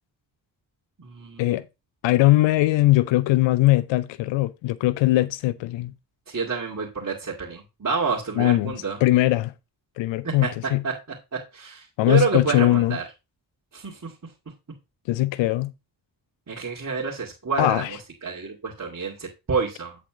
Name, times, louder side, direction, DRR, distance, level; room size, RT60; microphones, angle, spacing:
voice 1, 1.0-1.6 6.3-9.0 10.2-10.5 10.8-10.9 11.5-13.0 13.7-14.1 16.5-17.8 18.2-20.0, right 5 dB, 40° right, 2.3 m, -28 dB
voice 2, 2.0-5.9 8.4-9.5 10.0-10.8 12.0-13.0 15.1-15.7 17.6-18.0, left 17 dB, 80° left, 0.6 m, -20 dB
9.0 x 4.2 x 4.8 m
supercardioid pair, 45°, 44 cm